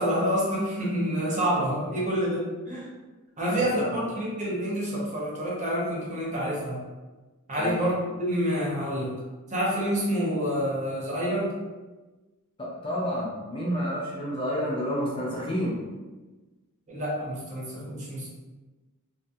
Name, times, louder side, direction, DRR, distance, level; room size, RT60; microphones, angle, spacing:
voice 1, 0.0-2.9 3.4-6.8 7.5-9.1 9.5-11.5 16.9-18.3, equal, 35° right, -4 dB, 0.6 m, -28 dB
voice 2, 3.4-4.1 7.6-7.8 12.6-15.8, equal, 25° left, -5 dB, 0.5 m, -30 dB
2.7 x 2.5 x 2.3 m, 1.2 s
head